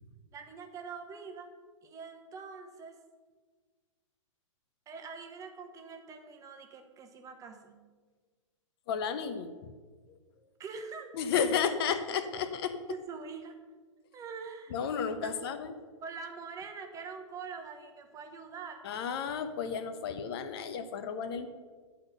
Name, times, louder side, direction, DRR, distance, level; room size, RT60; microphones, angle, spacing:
voice 1, 0.3-1.5 1.8-3.0 4.9-7.8 10.6-12.2 12.9-13.6 14.1-14.8 15.1-15.4 16.0-18.9, right 5 dB, 20° right, 5 dB, 1.0 m, -44 dB
voice 2, 8.9-9.5 11.1-12.8 14.7-15.7 18.8-21.5, left 7 dB, 50° left, 10 dB, 0.8 m, -32 dB
10.5 x 4.4 x 6.6 m, 1.5 s
hypercardioid pair, 120°, 17 cm